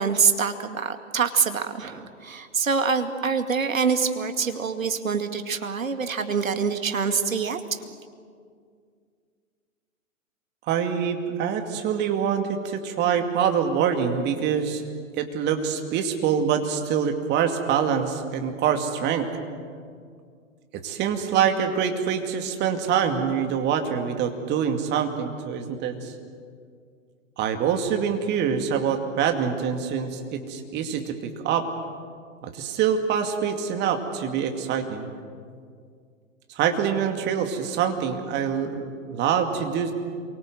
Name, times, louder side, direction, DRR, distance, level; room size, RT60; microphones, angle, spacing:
voice 1, 0.0-7.8, right 5 dB, 75° right, 7 dB, 2.3 m, -25 dB
voice 2, 10.7-14.8 15.2-19.3 20.7-26.1 27.4-31.7 32.4-35.1 36.6-38.8 39.1-39.9, right 7 dB, 25° right, 5 dB, 2.4 m, -25 dB
27.5 x 24.0 x 7.9 m, 2.1 s
figure-of-eight pair, 115°, 41 cm